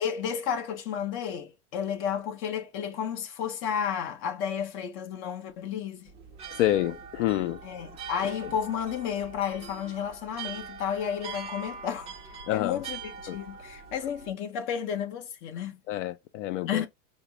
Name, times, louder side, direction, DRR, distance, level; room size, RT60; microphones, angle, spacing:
voice 1, 0.0-6.1 7.6-12.1 12.5-15.8 16.7-16.9, left 8 dB, 30° left, 0.8 m, -32 dB
sound 1, 6.1-14.3, right 5 dB, 15° right, 0.5 m, -42 dB
voice 2, 6.6-7.6 12.5-12.8 13.3-13.4 15.9-16.8, left 14 dB, 65° left, 0.5 m, -27 dB
5.0 x 2.0 x 3.3 m
supercardioid pair, 160°, 39 cm